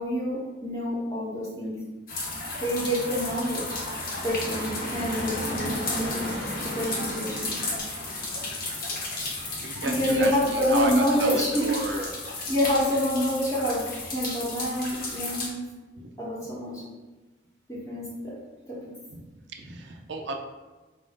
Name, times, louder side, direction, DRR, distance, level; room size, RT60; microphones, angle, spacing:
voice 1, 0.0-1.8 2.6-3.8 4.2-6.3 6.6-7.5 9.8-11.7 12.5-15.6 16.2-16.8 17.7-18.4 18.7-18.8, equal, 15° left, -6 dB, 0.8 m, -27 dB
sound 1, 2.1-15.5, left 2 dB, 45° left, 0.8 m, -33 dB
voice 2, 9.6-10.3 10.7-12.1 16.0-16.1 19.1-19.2 19.6-20.4, right 3 dB, 60° right, 3 dB, 0.5 m, -33 dB
4.3 x 2.5 x 3.6 m, 1.2 s
head